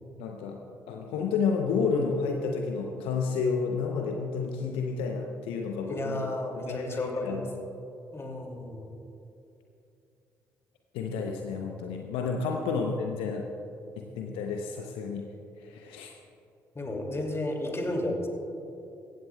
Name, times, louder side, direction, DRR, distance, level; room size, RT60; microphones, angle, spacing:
voice 1, 0.2-0.6 0.9-6.3 6.5-7.4 10.9-13.4 14.0-15.2 15.6-16.1, left 5 dB, 70° left, 2 dB, 0.8 m, -30 dB
voice 2, 5.9-7.4 8.1-8.9 16.7-18.3, left 1 dB, 25° left, 2 dB, 2.5 m, -33 dB
15.5 x 15.5 x 2.3 m, 2.8 s
hypercardioid pair, 45°, 10 cm